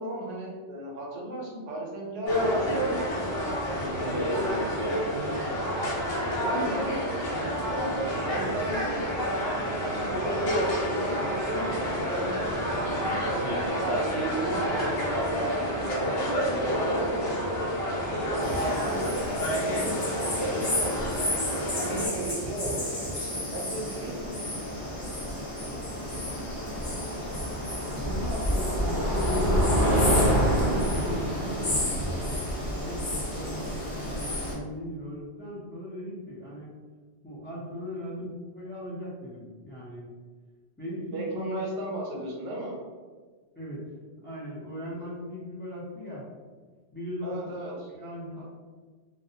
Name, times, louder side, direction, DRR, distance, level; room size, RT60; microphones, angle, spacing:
voice 1, 0.0-5.4 6.4-7.0 7.7-12.5 13.3-17.8 18.3-21.3 21.6-24.3 38.1-38.2 40.9-42.8 47.2-47.9, right 1 dB, 85° right, -2 dB, 1.0 m, -35 dB
sound 1, 2.3-22.1, equal, 65° left, 0.8 m, -29 dB
voice 2, 7.6-8.0 13.4-13.6 27.9-32.3 32.7-33.7 34.0-36.7 37.2-40.1 40.8-41.4 43.5-43.9 44.2-46.3 46.9-48.4, left 1 dB, 15° left, -8 dB, 0.4 m, -38 dB
sound 2, 18.4-34.5, left 1 dB, 35° left, 0.8 m, -31 dB
sound 3, 20.5-20.6 20.8-21.2 23.0-23.1 26.1-34.2, right 1 dB, 55° right, 0.6 m, -29 dB
2.3 x 2.0 x 2.7 m, 1.4 s
omnidirectional pair, 1.2 m